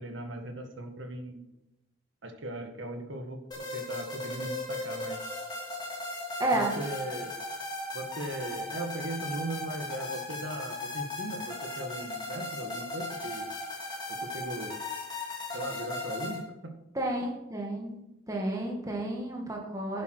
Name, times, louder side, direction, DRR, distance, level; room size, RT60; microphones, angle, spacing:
voice 1, 0.0-1.4 2.2-5.2 6.5-7.3 7.9-13.5 14.1-14.8 15.5-16.7, right 1 dB, 65° right, 5 dB, 1.7 m, -38 dB
sound 1, 3.5-16.4, left 2 dB, 20° left, 2.6 m, -37 dB
voice 2, 6.4-6.7 16.9-18.0 18.3-20.0, right 1 dB, 15° right, 0 dB, 2.1 m, -31 dB
11.0 x 8.4 x 4.6 m, 0.95 s
head